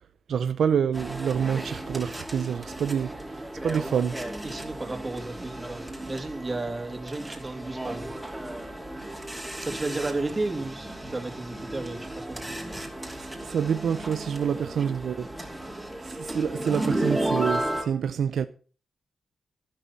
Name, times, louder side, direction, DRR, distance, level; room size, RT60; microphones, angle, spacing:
voice 1, 0.3-3.1 3.6-4.2 13.2-15.3 16.0-18.5, right 7 dB, 80° right, 0.6 m, -27 dB
sound 1, 0.9-17.8, right 1 dB, 10° right, 2.8 m, -34 dB
voice 2, 4.4-8.1 9.6-12.8 14.5-14.7 15.0-15.1, right 2 dB, 25° right, 2.8 m, -33 dB
11.5 x 11.5 x 4.2 m
cardioid pair, 95°, 0 cm